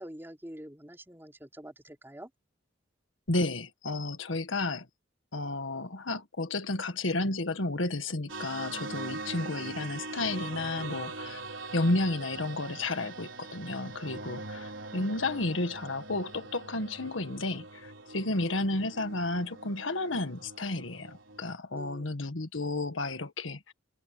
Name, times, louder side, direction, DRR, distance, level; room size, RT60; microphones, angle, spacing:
voice 1, 0.0-2.3 21.7-22.2, right 1 dB, 10° right, 3.6 m, -46 dB
voice 2, 3.3-4.9 5.3-11.4 11.7-23.7, left 2 dB, 75° left, 1.7 m, -32 dB
sound 1, 8.3-21.5, right 3 dB, 75° right, 4.6 m, -42 dB
head